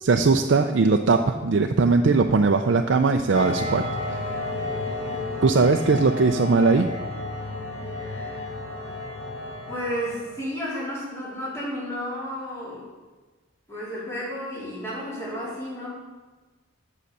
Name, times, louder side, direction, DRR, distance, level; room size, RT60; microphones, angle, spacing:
voice 1, 0.0-4.3 5.4-6.9, right 4 dB, 65° right, 4 dB, 0.4 m, -20 dB
sound 1, 3.3-10.4, left 2 dB, 75° left, 2.3 m, -32 dB
voice 2, 4.8-5.3 7.9-8.5 9.7-12.9 13.7-15.9, equal, 15° left, -7 dB, 3.6 m, -33 dB
7.7 x 6.7 x 6.7 m, 1.2 s
head